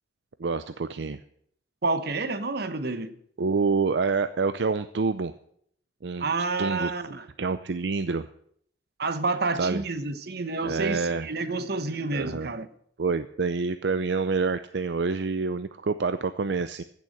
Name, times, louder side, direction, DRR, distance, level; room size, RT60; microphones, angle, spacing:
voice 1, 0.4-1.2 3.4-5.3 6.0-6.9 7.4-8.3 9.6-9.8 10.6-11.3 12.1-12.5 13.0-16.8, right 4 dB, 80° right, 0.6 m, -27 dB
voice 2, 1.8-3.2 6.2-7.3 9.0-12.7, right 3 dB, 65° right, 1.1 m, -29 dB
15.0 x 6.9 x 7.9 m
head